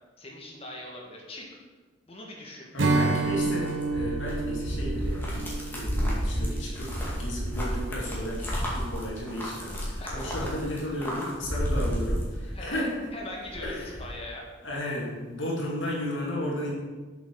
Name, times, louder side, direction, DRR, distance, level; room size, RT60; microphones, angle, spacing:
voice 1, 0.2-1.6 2.1-2.7 6.2-6.6 10.0-10.6 12.5-12.8 13.1-14.5, left 1 dB, 30° left, -1 dB, 1.8 m, -42 dB
voice 2, 2.7-13.1 13.6-13.9 14.6-16.7, left 1 dB, 80° left, -4 dB, 2.4 m, -34 dB
Strum, 2.8-8.2, right 3 dB, 70° right, 1.1 m, -30 dB
sound 1, 3.0-12.9 13.2-14.1, equal, 10° left, 2.1 m, -32 dB
7.5 x 6.0 x 6.3 m, 1.3 s
head